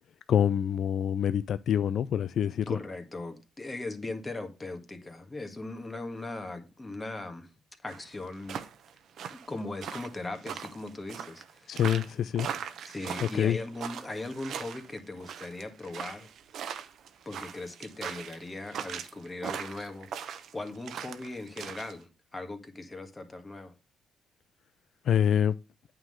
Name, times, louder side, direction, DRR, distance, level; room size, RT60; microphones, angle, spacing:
voice 1, 0.3-2.8 11.7-12.5 13.3-13.6 25.0-25.5, left 9 dB, 65° left, 0.4 m, -26 dB
voice 2, 2.7-7.5 7.8-8.6 9.3-11.8 12.9-16.3 17.3-23.7, left 2 dB, 20° left, 1.7 m, -39 dB
sound 1, 7.9-21.9, right 8 dB, 70° right, 0.8 m, -40 dB
8.9 x 3.8 x 6.4 m
cardioid pair, 90°, 0 cm